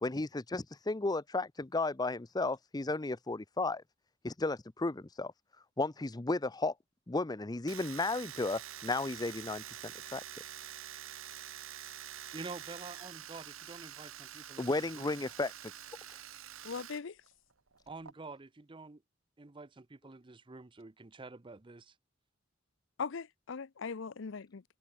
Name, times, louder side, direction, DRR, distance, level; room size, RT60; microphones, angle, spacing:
voice 1, 0.0-3.8 4.2-5.3 5.8-6.7 7.1-10.2 14.6-15.5, left 2 dB, 20° left, 0.6 m, -34 dB
Domestic sounds home sounds, 7.7-17.0 17.3-18.1, right 10 dB, 80° right, 2.0 m, -47 dB
voice 2, 12.3-14.7 15.0-15.1 17.9-19.0 19.4-21.9, right 3 dB, 25° right, 0.6 m, -48 dB
voice 3, 16.6-17.2 23.0-24.6, left 5 dB, 65° left, 0.6 m, -39 dB
head